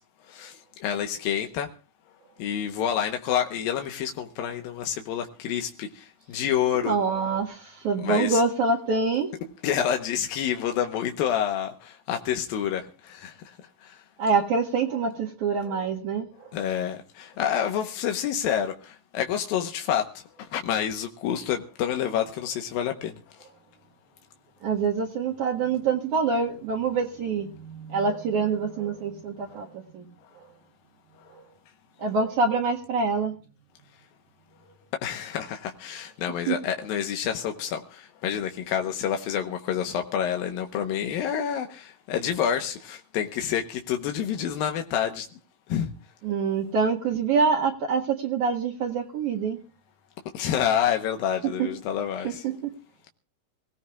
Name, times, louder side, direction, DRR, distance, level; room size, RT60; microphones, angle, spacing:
voice 1, 0.3-1.7 2.4-7.0 8.0-8.4 9.6-13.6 13.8-14.0 16.5-23.2 34.9-45.3 45.7-45.9 50.3-52.5, left 9 dB, 85° left, 2.8 m, -28 dB
voice 2, 6.7-9.3 14.2-16.5 24.6-30.1 32.0-33.3 36.5-36.6 46.2-49.6 52.2-52.7, right 4 dB, 60° right, 2.9 m, -26 dB
25.5 x 17.0 x 2.4 m
omnidirectional pair, 4.1 m